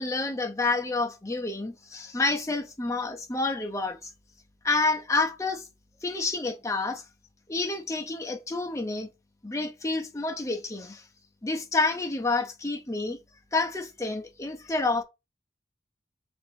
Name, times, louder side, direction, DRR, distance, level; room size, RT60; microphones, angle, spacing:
voice 1, 0.0-4.1 4.6-5.7 6.0-7.0 7.5-9.1 9.4-11.0 11.4-13.2 13.5-15.0, left 3 dB, 15° left, 0.6 m, -29 dB
4.0 x 2.6 x 4.4 m
head